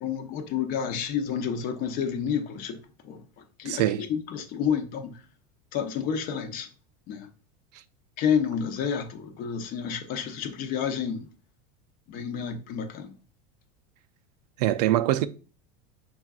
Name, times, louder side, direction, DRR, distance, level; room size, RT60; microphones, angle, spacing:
voice 1, 0.0-2.8 3.1-3.2 3.6-5.1 5.7-6.7 7.1-7.3 8.2-11.2 12.1-13.1, left 7 dB, 45° left, 0.7 m, -29 dB
voice 2, 3.7-4.1 14.6-15.3, right 14 dB, 90° right, 0.5 m, -23 dB
6.2 x 3.6 x 2.4 m
supercardioid pair, 140°, 20 cm